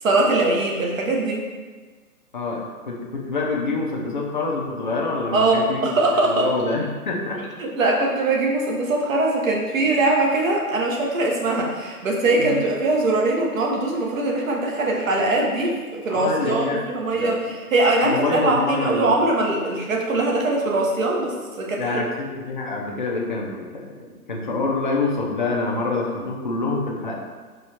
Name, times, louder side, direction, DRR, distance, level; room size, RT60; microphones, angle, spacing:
voice 1, 0.0-1.5 5.3-6.5 7.6-22.0, right 2 dB, 60° right, -1 dB, 1.0 m, -22 dB
voice 2, 2.3-5.8 6.2-7.4 12.4-12.6 16.1-16.8 17.1-17.3 18.0-19.1 21.8-23.9 24.3-27.2, left 3 dB, 35° left, -2 dB, 0.4 m, -26 dB
4.4 x 2.4 x 4.1 m, 1.4 s
hypercardioid pair, 155°, 45 cm